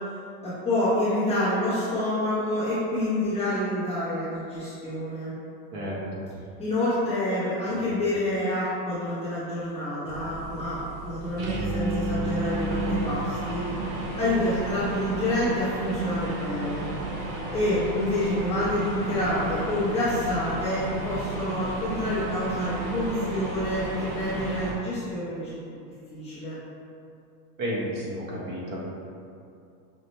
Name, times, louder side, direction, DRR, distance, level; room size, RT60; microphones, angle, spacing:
voice 1, 0.4-5.3 6.6-13.6 14.2-16.9 17.5-25.6 26.1-26.6, left 1 dB, 15° left, -12 dB, 0.8 m, -28 dB
sound 1, 10.1-24.7, right 2 dB, 35° right, 0.5 m, -32 dB
voice 2, 27.6-28.8, equal, 65° right, -6 dB, 1.3 m, -31 dB
5.3 x 2.1 x 3.1 m, 2.6 s
supercardioid pair, 155°, 50 cm